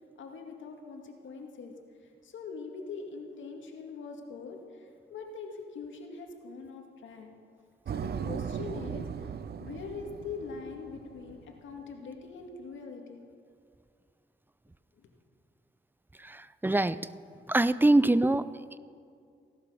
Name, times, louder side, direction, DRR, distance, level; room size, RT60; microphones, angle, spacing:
voice 1, 0.2-1.7 2.2-7.3 7.9-13.2 15.0-15.1, left 4 dB, 80° left, 3 dB, 2.2 m, -43 dB
sound 1, 7.9-11.6, right 7 dB, 55° right, 0.6 m, -38 dB
voice 2, 16.2-17.0 17.5-18.4, right 2 dB, 10° right, 16 dB, 0.6 m, -24 dB
17.0 x 12.0 x 6.3 m, 2.3 s
cardioid pair, 75°, 19 cm